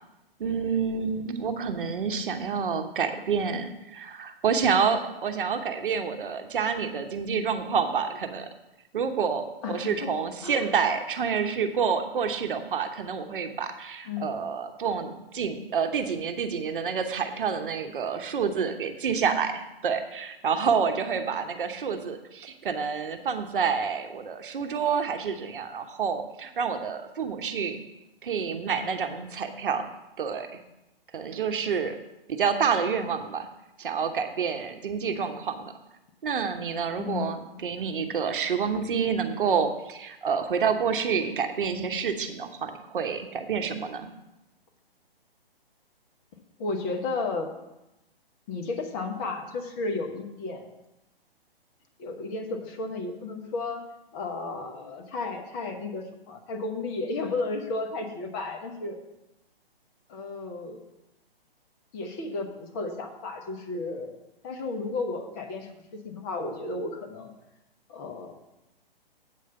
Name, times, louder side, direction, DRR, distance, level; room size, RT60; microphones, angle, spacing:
voice 1, 0.4-8.5 8.9-27.8 28.2-29.9 30.2-30.6 31.1-31.9 32.3-33.5 33.8-35.7 36.2-44.1, right 6 dB, 60° right, 7 dB, 1.0 m, -28 dB
voice 2, 9.6-10.1 10.4-10.7 14.1-14.3 37.0-37.3 46.6-47.5 48.5-50.7 52.0-53.8 54.1-59.0 60.1-60.8 61.9-64.2 64.4-67.3 67.9-68.3, left 3 dB, 25° left, 3 dB, 1.1 m, -33 dB
8.5 x 4.8 x 6.8 m, 0.93 s
figure-of-eight pair, 135°, 30 cm